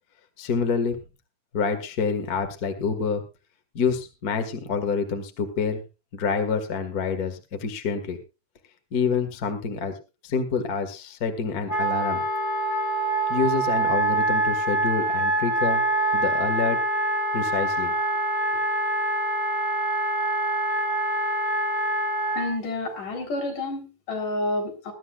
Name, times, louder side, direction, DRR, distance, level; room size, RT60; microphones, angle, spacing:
voice 1, 0.4-1.0 1.5-3.2 3.7-5.8 6.1-8.2 8.9-10.0 10.2-12.2 13.3-15.8 16.1-16.8 17.3-17.9, left 5 dB, 35° left, 7 dB, 1.7 m, -27 dB
Wind instrument woodwind instrument, 11.7-22.5, right 1 dB, 5° left, 4.6 m, -25 dB
voice 2, 22.4-24.9, left 2 dB, 70° left, 2 dB, 5.3 m, -29 dB
21.5 x 12.5 x 2.4 m, 0.28 s
omnidirectional pair, 3.8 m